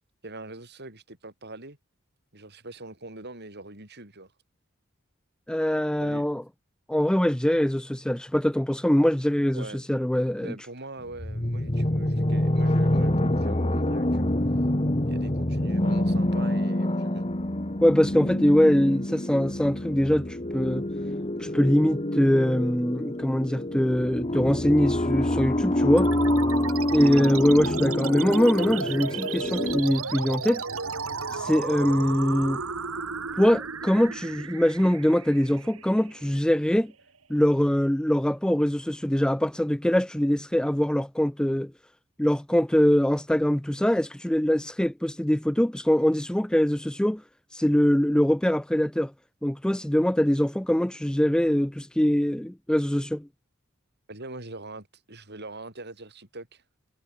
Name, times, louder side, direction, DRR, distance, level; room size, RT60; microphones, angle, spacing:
voice 1, 0.2-1.8 2.3-4.3 6.0-6.3 9.5-9.8 10.4-14.3 15.1-17.3 18.5-18.6 27.2-27.3 54.1-56.6, right 2 dB, 50° right, 6.4 m, -42 dB
voice 2, 5.5-6.4 6.9-10.5 17.8-20.9 21.4-26.1 26.9-30.6 31.3-32.6 33.4-36.9 37.3-41.7 42.2-47.2 47.5-49.1 49.4-53.3, equal, 5° left, 0.4 m, -23 dB
sound 1, 11.1-29.8, left 1 dB, 30° left, 2.0 m, -26 dB
sound 2, 26.0-36.9, right 5 dB, 75° right, 3.0 m, -34 dB
head